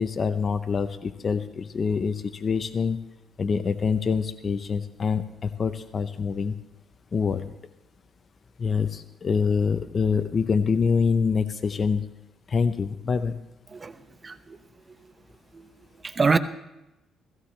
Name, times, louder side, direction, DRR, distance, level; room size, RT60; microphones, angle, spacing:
voice 1, 0.0-3.0 3.4-6.5 7.1-7.5 8.6-12.0 12.5-13.4, left 5 dB, 45° left, 0.7 m, -25 dB
voice 2, 14.2-14.6 15.5-15.7 16.0-16.4, right 4 dB, 30° right, 0.8 m, -24 dB
16.5 x 16.0 x 3.3 m
cardioid pair, 90°, 0 cm